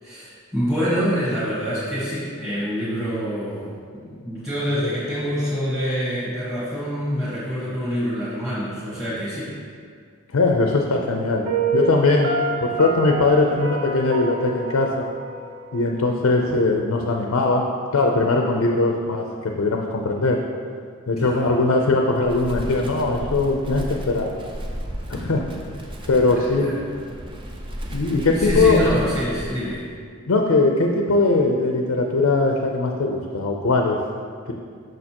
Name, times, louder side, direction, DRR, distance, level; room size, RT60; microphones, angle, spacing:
voice 1, 0.0-9.5 21.2-21.5 26.3-26.7 28.3-29.8, equal, ahead, -12 dB, 1.3 m, -26 dB
voice 2, 10.3-11.5 11.7-12.3 12.6-15.0 15.7-17.6 17.9-20.4 21.1-24.3 25.1-25.5 26.1-26.7 27.9-28.8 30.3-34.0, left 3 dB, 75° left, 2 dB, 0.5 m, -20 dB
Piano, 11.5-16.4, right 2 dB, 70° right, 0.9 m, -27 dB
Wind, 22.1-29.9, equal, 25° right, 0.5 m, -33 dB
6.4 x 6.4 x 2.9 m, 2.1 s
head